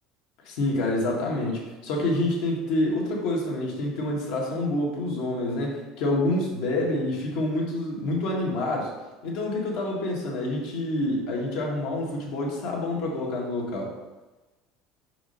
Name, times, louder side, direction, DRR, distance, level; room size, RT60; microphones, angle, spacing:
voice 1, 0.4-8.9 9.2-13.9, left 1 dB, 70° left, -2 dB, 1.6 m, -27 dB
4.9 x 4.2 x 5.3 m, 1.1 s
cardioid pair, 155°, 0 cm